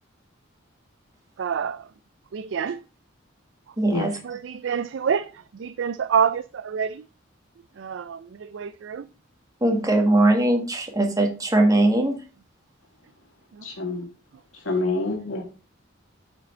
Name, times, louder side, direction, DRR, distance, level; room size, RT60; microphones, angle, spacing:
voice 1, 1.4-1.9 2.3-2.8 3.7-3.8 4.2-7.1 7.8-9.1 13.5-13.7, right 7 dB, 65° right, 0.4 m, -27 dB
voice 2, 3.8-4.1 9.6-12.1, right 1 dB, 20° right, 1.6 m, -20 dB
voice 3, 13.6-14.1 14.5-15.4, left 2 dB, 80° left, 2.1 m, -27 dB
8.2 x 5.1 x 4.4 m
head